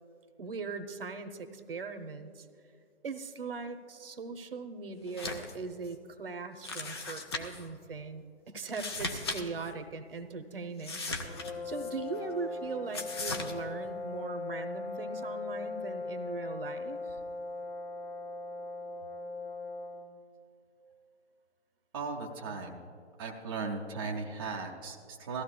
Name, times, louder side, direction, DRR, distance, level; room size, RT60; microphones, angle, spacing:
voice 1, 0.4-2.5 3.0-11.1 11.6-17.2, right 4 dB, 55° right, 8 dB, 0.9 m, -40 dB
sound 1, 5.1-5.5 5.9-6.0 6.6-7.7 8.6-9.4 9.7-9.8 10.8-11.9 12.9-13.5, left 3 dB, 25° left, 0.5 m, -37 dB
sound 2, 11.2-20.2, left 3 dB, 55° left, 1.2 m, -39 dB
voice 2, 21.9-22.8 23.2-25.4, right 4 dB, 20° right, -2 dB, 0.6 m, -37 dB
18.0 x 14.5 x 2.2 m, 2.4 s
figure-of-eight pair, 140°, 35 cm